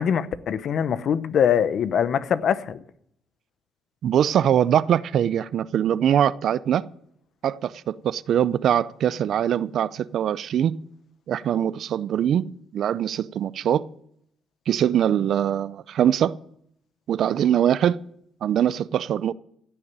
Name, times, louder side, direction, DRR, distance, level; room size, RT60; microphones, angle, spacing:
voice 1, 0.0-2.8, left 8 dB, 65° left, 0.8 m, -23 dB
voice 2, 4.0-6.8 7.4-10.8 11.3-13.8 14.7-16.4 17.1-18.0 18.4-19.3, right 10 dB, 70° right, 0.5 m, -22 dB
16.0 x 6.9 x 8.8 m
cardioid pair, 90°, 0 cm